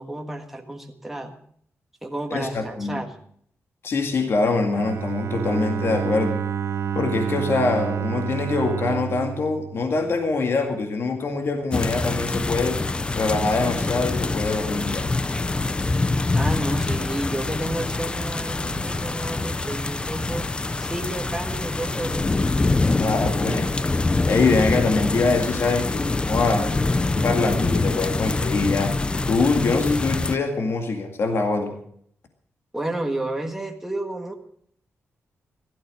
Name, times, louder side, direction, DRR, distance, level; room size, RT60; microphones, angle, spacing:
voice 1, 0.0-1.4 2.0-3.1 16.3-20.5 20.8-22.4 27.0-27.5 32.7-34.3, right 1 dB, 5° right, 3 dB, 1.5 m, -31 dB
voice 2, 2.3-3.0 3.8-6.4 6.9-12.8 13.1-15.1 23.0-26.8 27.2-29.0 29.3-31.8, left 3 dB, 55° left, 4 dB, 2.0 m, -24 dB
Bowed string instrument, 4.7-10.6, right 8 dB, 65° right, 0.8 m, -29 dB
sound 1, 11.7-30.4, left 3 dB, 20° left, 0.5 m, -25 dB
16.0 x 13.0 x 6.3 m, 0.65 s
wide cardioid pair, 140°, 5 cm